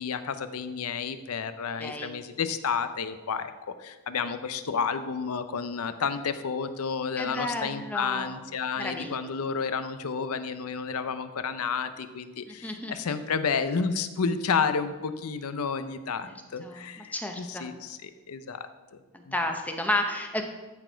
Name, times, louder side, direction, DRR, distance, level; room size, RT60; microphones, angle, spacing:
voice 1, 0.0-3.5 3.8-18.7 19.3-19.4, left 5 dB, 75° left, 11 dB, 0.6 m, -31 dB
voice 2, 1.8-2.1 7.2-8.4 8.8-9.2 12.5-13.1 16.2-17.7 19.1-20.5, left 1 dB, 5° left, 4 dB, 0.7 m, -32 dB
12.5 x 4.3 x 4.5 m, 1.2 s
head